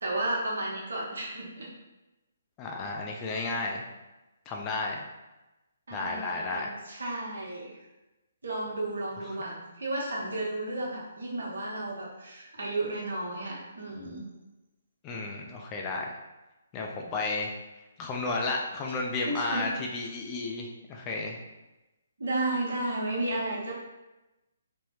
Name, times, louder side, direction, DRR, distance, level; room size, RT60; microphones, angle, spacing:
voice 1, 0.0-1.7 5.9-7.8 8.4-14.3 19.2-19.7 22.2-23.7, right 2 dB, 65° right, -4 dB, 1.0 m, -33 dB
voice 2, 2.6-3.8 4.5-5.0 5.9-6.7 15.0-16.2 16.7-17.5 18.0-21.4, left 3 dB, 25° left, 0 dB, 0.4 m, -32 dB
3.4 x 2.1 x 3.0 m, 1.0 s
figure-of-eight pair, 135°, 0 cm